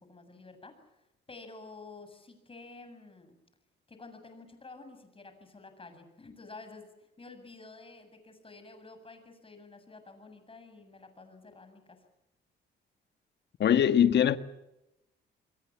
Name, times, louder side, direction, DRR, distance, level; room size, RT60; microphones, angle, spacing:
voice 1, 0.0-3.4 3.9-12.0, left 3 dB, 25° left, 7.7 m, -50 dB
voice 2, 13.6-14.4, left 9 dB, 60° left, 1.7 m, -22 dB
29.0 x 22.5 x 7.4 m
cardioid pair, 90°, 20 cm